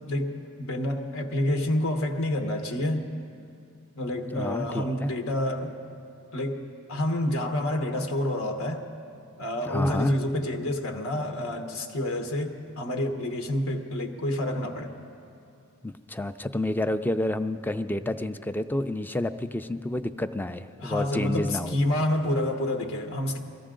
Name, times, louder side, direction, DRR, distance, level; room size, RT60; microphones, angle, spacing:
voice 1, 0.1-3.1 4.0-5.8 6.3-8.9 9.4-15.0 20.8-23.4, left 1 dB, 80° left, 4 dB, 1.1 m, -28 dB
voice 2, 4.3-5.1 9.7-10.1 15.8-21.8, left 1 dB, 10° left, 10 dB, 0.4 m, -29 dB
23.0 x 15.0 x 3.8 m, 2.5 s
head